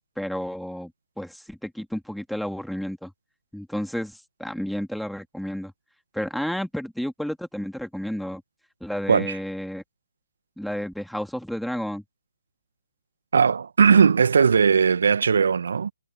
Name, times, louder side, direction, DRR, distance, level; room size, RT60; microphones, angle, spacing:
voice 1, 0.2-0.9 1.2-3.1 3.5-5.7 6.1-8.4 8.8-9.8 10.6-12.0, equal, ahead, 2.8 m, -31 dB
voice 2, 13.3-15.9, right 6 dB, 65° right, 1.8 m, -18 dB
figure-of-eight pair, 145°, 0 cm